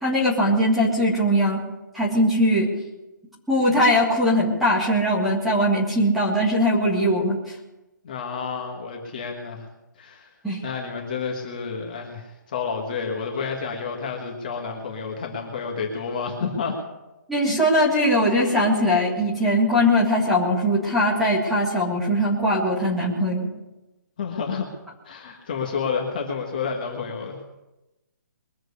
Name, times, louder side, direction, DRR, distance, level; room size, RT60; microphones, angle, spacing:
voice 1, 0.0-1.6 1.9-2.7 3.5-7.4 10.4-10.6 17.3-23.5, equal, ahead, -7 dB, 1.9 m, -20 dB
voice 2, 8.0-9.7 10.0-10.3 10.6-16.8 24.2-24.7 25.0-27.3, left 5 dB, 25° left, 1 dB, 1.6 m, -30 dB
22.5 x 7.7 x 6.7 m, 1.0 s
hypercardioid pair, 180°, 10 cm